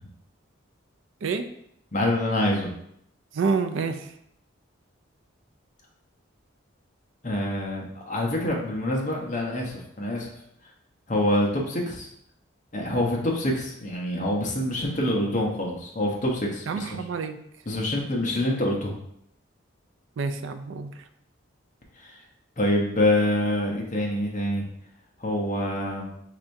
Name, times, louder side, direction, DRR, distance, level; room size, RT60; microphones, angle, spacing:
voice 1, 1.9-2.7 7.2-10.3 11.1-12.1 12.7-17.0 17.7-18.9 22.0-22.2 22.6-24.6 25.2-26.1, left 1 dB, 40° left, -2 dB, 0.8 m, -26 dB
voice 2, 3.3-4.1 16.7-17.4 20.2-20.9, right 4 dB, 70° right, 8 dB, 0.4 m, -28 dB
4.8 x 3.3 x 2.6 m, 0.72 s
head